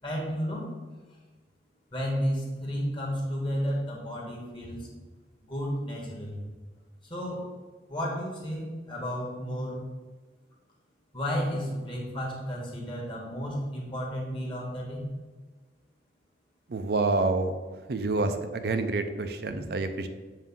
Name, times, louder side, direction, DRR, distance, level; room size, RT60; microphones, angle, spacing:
voice 1, 0.0-0.7 1.9-4.9 5.4-6.5 7.0-7.5 7.9-9.8 11.1-15.1, equal, 30° left, -3 dB, 1.5 m, -32 dB
voice 2, 16.7-17.6 17.9-20.1, right 3 dB, 60° right, 8 dB, 0.5 m, -28 dB
7.4 x 2.7 x 5.5 m, 1.3 s
head